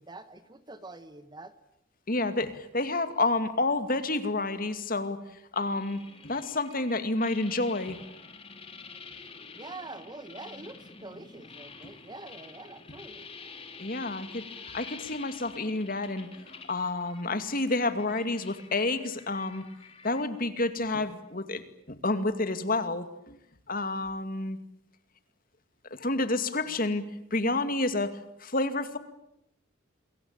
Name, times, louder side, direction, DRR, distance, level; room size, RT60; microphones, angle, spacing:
voice 1, 0.0-1.5 9.5-13.3, right 2 dB, 20° right, 12 dB, 1.3 m, -45 dB
voice 2, 2.1-5.2 5.5-8.0 11.8-11.9 13.8-14.5 14.7-19.6 20.0-23.4 23.7-24.6 25.9-27.0 27.3-29.0, left 2 dB, 45° left, 10 dB, 2.4 m, -29 dB
sound 1, 5.5-20.2, left 4 dB, 30° left, 3.3 m, -48 dB
28.5 x 22.5 x 8.9 m, 0.79 s
head